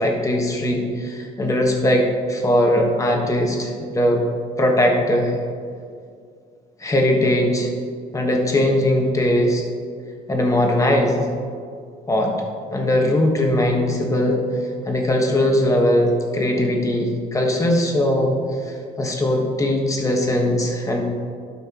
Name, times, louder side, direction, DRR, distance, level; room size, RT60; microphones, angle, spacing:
voice 1, 0.0-4.2 4.6-5.3 6.8-7.7 8.1-9.6 10.3-11.3 12.1-12.3 12.7-14.4 14.9-18.4 19.0-21.0, left 1 dB, 20° left, 1 dB, 1.3 m, -20 dB
11.5 x 5.9 x 2.9 m, 2.2 s
cardioid pair, 110°, 17 cm